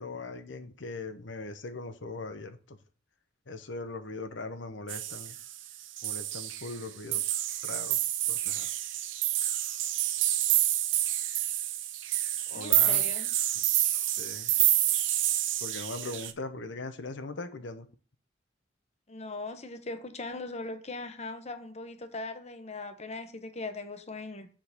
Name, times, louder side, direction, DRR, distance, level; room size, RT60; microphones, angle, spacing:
voice 1, 0.0-2.8 3.5-5.4 6.0-7.3 7.6-8.7 12.5-13.1 14.0-14.5 15.6-17.9, left 3 dB, 70° left, 0.9 m, -40 dB
sound 1, 4.9-5.6 6.0-6.8 7.1-16.3, right 13 dB, 80° right, 0.7 m, -28 dB
voice 2, 12.5-13.3 19.1-24.5, left 2 dB, 35° left, 1.0 m, -39 dB
7.2 x 3.9 x 6.6 m
head